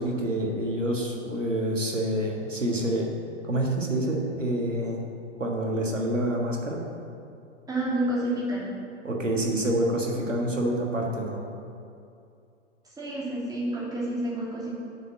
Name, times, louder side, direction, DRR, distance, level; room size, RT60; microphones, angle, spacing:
voice 1, 0.0-3.1 3.4-5.1 5.4-6.8 9.0-11.4, right 1 dB, 90° right, 0 dB, 1.6 m, -27 dB
voice 2, 7.7-8.8 13.0-14.8, right 1 dB, 10° right, -6 dB, 2.6 m, -29 dB
7.1 x 6.5 x 7.3 m, 2.5 s
figure-of-eight pair, 105°, 37 cm